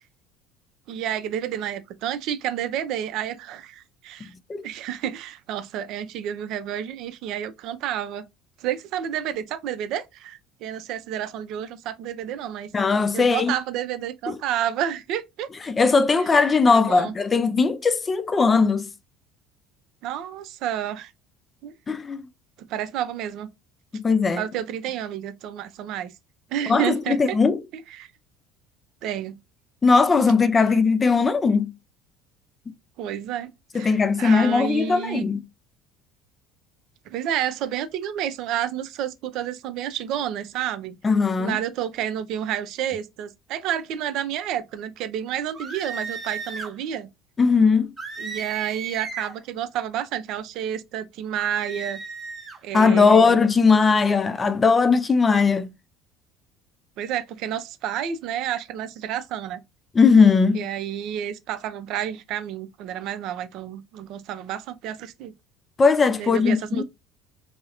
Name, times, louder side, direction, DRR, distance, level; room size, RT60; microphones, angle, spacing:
voice 1, 0.9-4.3 4.6-8.3 8.6-12.7 13.1-15.5 16.3-17.1 20.0-21.1 21.6-21.7 22.6-23.5 24.4-26.1 26.5-27.4 27.7-28.1 29.0-29.4 33.0-35.3 37.1-41.0 41.4-47.1 48.2-52.0 52.6-53.4 57.0-59.6 60.5-65.3 66.2-66.8, right 10 dB, 65° right, 0.4 m, -30 dB
voice 2, 12.7-13.5 14.3-14.4 15.7-18.9 21.9-22.2 23.9-24.4 26.7-27.6 29.8-31.7 33.7-35.4 41.0-41.6 47.4-47.9 52.7-55.7 59.9-60.7 65.8-66.8, left 4 dB, 25° left, 0.4 m, -19 dB
sound 1, 45.5-46.7 48.0-49.4 51.4-52.6, right 5 dB, 25° right, 0.9 m, -35 dB
2.7 x 2.0 x 2.4 m
supercardioid pair, 85°, 0 cm